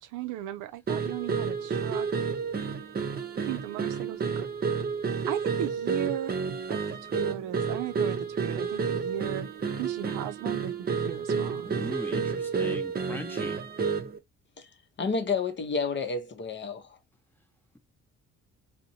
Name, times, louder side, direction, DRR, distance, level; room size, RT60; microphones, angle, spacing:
voice 1, 0.0-2.2 3.5-4.5 5.3-6.4 6.7-9.5 9.8-11.8, right 12 dB, 85° right, 0.5 m, -36 dB
sound 1, 0.9-14.2, right 5 dB, 30° right, 0.6 m, -30 dB
voice 2, 11.6-13.6, left 1 dB, 5° left, 0.8 m, -39 dB
voice 3, 15.0-16.9, left 4 dB, 40° left, 0.7 m, -30 dB
2.6 x 2.1 x 2.7 m
cardioid pair, 90°, 30 cm